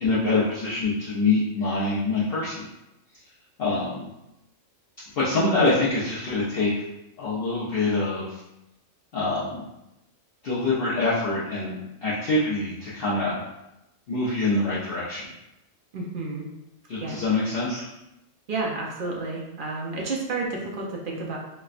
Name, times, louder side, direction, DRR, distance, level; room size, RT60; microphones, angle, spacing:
voice 1, 0.0-2.5 3.6-4.0 5.1-6.7 7.2-8.4 9.1-9.6 10.4-13.3 14.1-15.2 16.9-17.9, left 3 dB, 55° left, -9 dB, 0.8 m, -25 dB
voice 2, 15.9-16.5 17.0-17.2 18.5-21.4, right 3 dB, 55° right, -2 dB, 0.6 m, -31 dB
4.3 x 2.1 x 2.4 m, 0.90 s
omnidirectional pair, 1.4 m